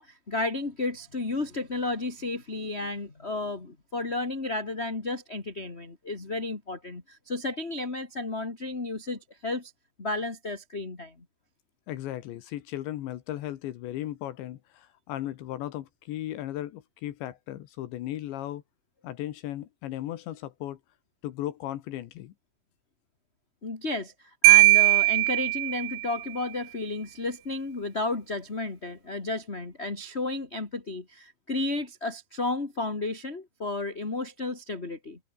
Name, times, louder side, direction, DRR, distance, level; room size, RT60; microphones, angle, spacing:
voice 1, 0.0-9.7 10.0-11.1 23.6-35.2, left 2 dB, 20° left, 1.8 m, -32 dB
voice 2, 11.9-18.6 19.0-20.8 21.2-22.3, left 13 dB, 75° left, 3.5 m, -36 dB
Marimba xylophone, 24.4-26.2, right 21 dB, 90° right, 2.4 m, -19 dB
omnidirectional pair, 5.5 m